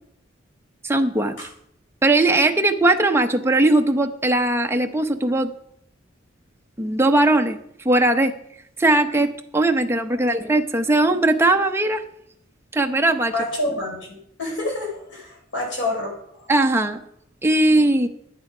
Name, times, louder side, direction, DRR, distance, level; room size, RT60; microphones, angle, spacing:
voice 1, 0.8-1.4 2.0-5.5 6.8-7.6 7.8-8.3 8.8-12.0 12.7-13.5 16.5-17.0 17.4-18.1, right 2 dB, 15° right, 5 dB, 0.8 m, -19 dB
voice 2, 10.1-10.5 13.3-16.5, left 2 dB, 70° left, -1 dB, 4.6 m, -28 dB
10.5 x 9.6 x 4.9 m, 0.72 s
head